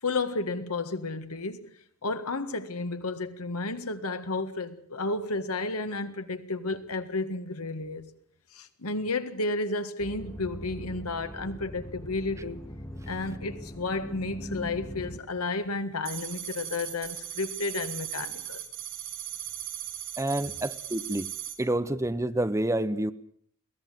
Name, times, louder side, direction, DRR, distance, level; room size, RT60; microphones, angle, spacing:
voice 1, 0.0-1.7 2.0-8.0 8.5-12.6 13.1-18.6, left 3 dB, 85° left, 1.7 m, -32 dB
sound 1, 10.0-15.2, equal, 15° left, 1.7 m, -41 dB
sound 2, 16.1-21.6, right 10 dB, 55° right, 4.2 m, -38 dB
voice 2, 20.2-21.3 21.6-23.1, right 1 dB, 15° right, 0.8 m, -28 dB
22.5 x 17.0 x 7.6 m
head